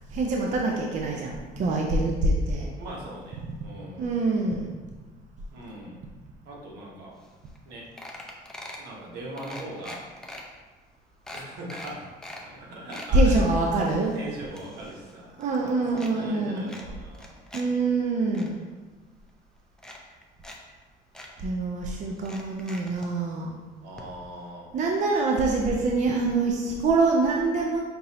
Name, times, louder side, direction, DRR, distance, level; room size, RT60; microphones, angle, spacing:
voice 1, 0.1-2.7 4.0-4.7 13.1-14.1 15.4-16.7 17.5-18.6 21.4-23.6 24.7-27.8, right 3 dB, 45° right, 0 dB, 0.5 m, -25 dB
voice 2, 2.8-4.1 5.5-6.0 6.4-7.2 7.7-7.9 8.8-10.0 11.3-12.1 12.6-13.4 14.1-17.3 17.6-18.1 23.8-24.7, right 1 dB, 85° right, -3 dB, 1.2 m, -40 dB
sound 1, 7.3-7.4 7.6-7.7 8.0-8.9 9.4-10.4 10.9-11.0 11.3-12.4 12.7-13.1 13.6-15.2 15.4-16.1 16.7-17.6 18.0-18.5 19.3-19.4 19.8-20.6 20.8-20.9 21.1-21.3 22.2-23.1 24.0-24.1 24.4-24.5, left 1 dB, 5° left, 0.5 m, -43 dB
5.2 x 2.9 x 2.8 m, 1.3 s
cardioid pair, 110°, 17 cm